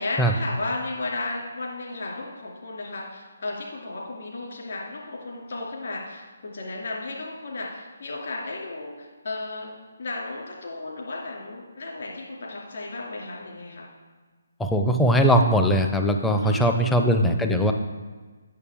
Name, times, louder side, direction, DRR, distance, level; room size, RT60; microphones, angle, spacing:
voice 1, 0.0-9.7 10.0-13.9 16.4-17.1, left 2 dB, 55° left, -2 dB, 2.4 m, -34 dB
voice 2, 14.6-17.7, equal, 5° left, 4 dB, 0.5 m, -20 dB
8.4 x 6.7 x 3.5 m, 1.4 s
figure-of-eight pair, 145°, 0 cm